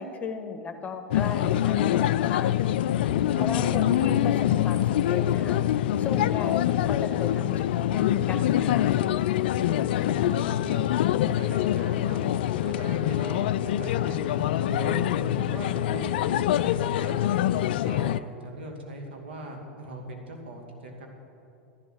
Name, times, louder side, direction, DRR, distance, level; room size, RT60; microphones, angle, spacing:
voice 1, 0.0-2.5 3.0-3.1 3.4-5.6 6.0-8.9, left 4 dB, 20° left, 8 dB, 1.2 m, -36 dB
sound 1, 1.1-18.2, left 12 dB, 55° left, 0.4 m, -25 dB
voice 2, 3.3-3.9 9.5-10.8 11.3-12.2 12.6-15.0 15.4-17.2 17.8-21.1, right 1 dB, 65° right, 2 dB, 2.5 m, -40 dB
12.5 x 11.5 x 6.6 m, 2.8 s
figure-of-eight pair, 90°, 6 cm